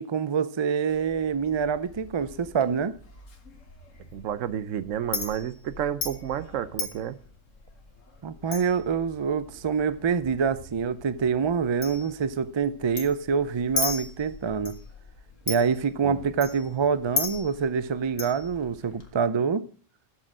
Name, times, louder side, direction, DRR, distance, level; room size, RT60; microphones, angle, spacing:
voice 1, 0.0-2.9 8.2-14.8 15.5-19.6, right 6 dB, 45° right, 0.3 m, -26 dB
Chink clink, 0.9-19.1, left 4 dB, 80° left, 1.9 m, -38 dB
voice 2, 4.1-7.2 16.0-16.2, right 9 dB, 80° right, 1.1 m, -31 dB
8.3 x 6.4 x 7.4 m
omnidirectional pair, 1.3 m